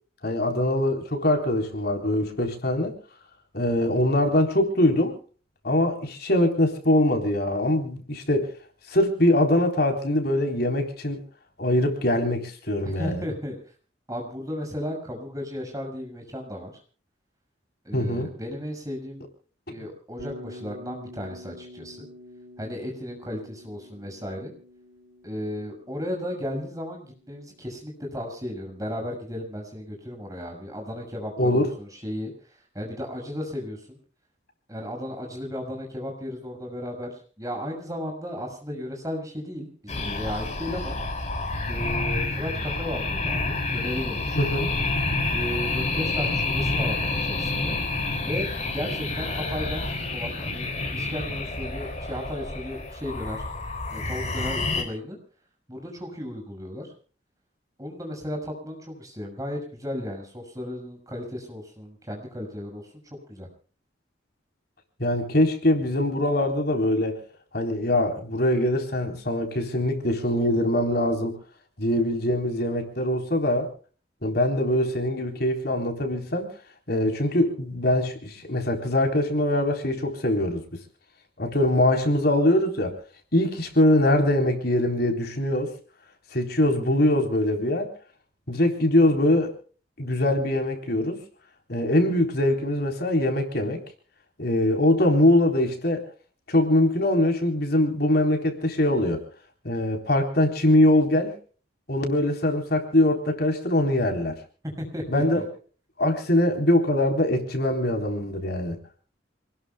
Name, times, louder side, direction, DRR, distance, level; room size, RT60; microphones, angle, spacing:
voice 1, 0.2-3.0 3.5-5.1 5.6-8.5 8.9-11.2 11.6-13.2 17.9-18.3 31.4-31.7 44.3-44.7 65.0-67.2 67.5-71.3 71.8-73.7 74.2-76.5 76.9-80.6 81.4-83.0 83.3-85.7 86.3-87.9 88.5-89.5 90.0-91.2 91.7-93.8 94.4-96.0 96.5-99.2 99.6-101.3 101.9-104.3 105.1-105.4 106.0-108.8, left 1 dB, 55° left, 3 dB, 3.9 m, -23 dB
voice 2, 12.8-13.6 14.1-16.7 17.8-19.2 19.7-22.1 22.6-24.5 25.2-32.3 32.7-34.0 34.7-41.0 41.7-44.4 45.3-47.7 48.2-49.8 50.1-53.4 53.9-55.2 55.7-56.9 57.8-62.8 63.3-63.5 104.8-105.4, equal, 20° right, 1 dB, 6.5 m, -35 dB
Bass guitar, 20.2-28.3, left 1 dB, 65° right, 6.9 m, -47 dB
sound 1, 39.9-54.8, left 2 dB, 35° left, 3.9 m, -28 dB
28.0 x 20.0 x 2.3 m, 0.41 s
head